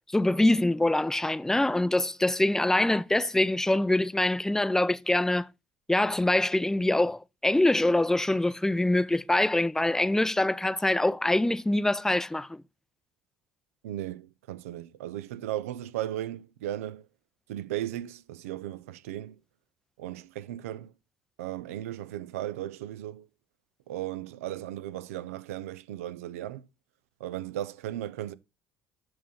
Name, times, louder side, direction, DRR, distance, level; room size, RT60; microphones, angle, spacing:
voice 1, 0.1-5.5 5.9-12.6, left 1 dB, 5° left, 0.4 m, -24 dB
voice 2, 13.8-17.1 17.5-19.4 20.0-20.9 21.4-23.3 23.9-26.7 27.2-28.3, right 13 dB, 90° right, 0.4 m, -36 dB
7.6 x 5.7 x 4.2 m
hypercardioid pair, 70°, 7 cm